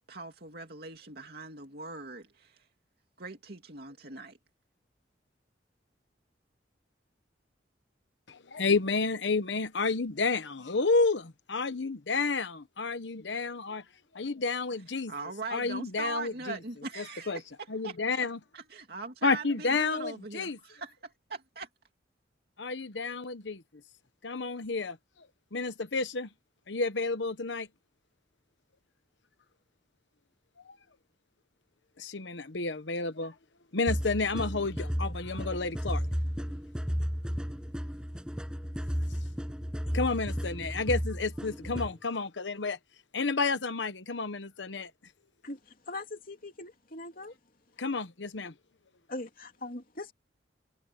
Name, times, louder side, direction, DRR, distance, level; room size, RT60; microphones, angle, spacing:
voice 1, 0.0-2.7 3.2-4.4 15.1-18.3 18.5-21.7, right 3 dB, 60° right, 2.6 m, -41 dB
voice 2, 8.3-13.8 14.1-15.1 15.5-16.6 17.0-17.4 17.7-18.4 19.2-20.6 22.6-23.6 24.2-25.0 25.5-26.3 26.7-27.7 32.0-33.3 33.7-36.1 39.9-42.8 43.1-44.9 47.8-48.5, left 3 dB, 80° left, 1.0 m, -30 dB
sound 1, 33.9-41.9, equal, 5° right, 6.2 m, -33 dB
voice 3, 45.4-47.3 49.1-50.1, left 2 dB, 50° left, 3.1 m, -41 dB
head